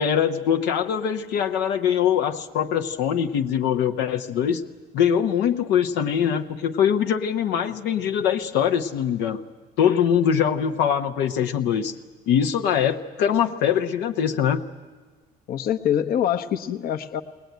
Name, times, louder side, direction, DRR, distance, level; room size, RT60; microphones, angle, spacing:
voice 1, 0.0-4.6 4.9-9.4 9.8-11.9 12.3-14.6, left 8 dB, 90° left, 6 dB, 1.0 m, -22 dB
voice 2, 15.5-17.2, left 10 dB, 60° left, 7 dB, 1.0 m, -24 dB
20.0 x 19.5 x 9.3 m, 1.4 s
cardioid pair, 110°, 17 cm